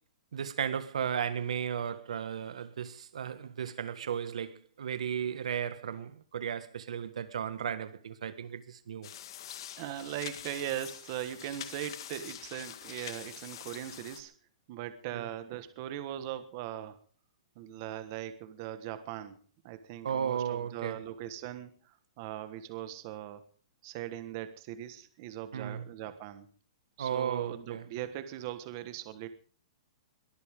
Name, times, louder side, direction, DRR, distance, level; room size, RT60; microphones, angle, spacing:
voice 1, 0.3-9.1 15.1-15.3 20.0-21.0 25.5-25.8 27.0-27.8, right 8 dB, 85° right, 1.7 m, -35 dB
sound 1, 9.0-14.2, left 10 dB, 45° left, 1.7 m, -45 dB
voice 2, 9.8-14.3 14.7-17.0 17.6-19.4 19.6-23.4 23.8-26.5 27.0-29.3, right 12 dB, 30° right, 1.4 m, -40 dB
22.0 x 14.0 x 3.7 m
hypercardioid pair, 180°, 3 cm